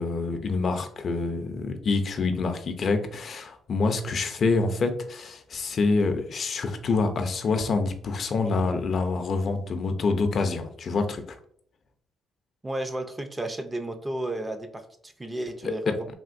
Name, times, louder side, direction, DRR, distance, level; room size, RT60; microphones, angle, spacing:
voice 1, 0.0-11.4 15.6-15.9, left 3 dB, 55° left, 7 dB, 0.4 m, -26 dB
voice 2, 12.6-16.1, right 1 dB, 20° right, 7 dB, 0.4 m, -33 dB
3.5 x 2.5 x 2.5 m, 0.63 s
cardioid pair, 90°, 0 cm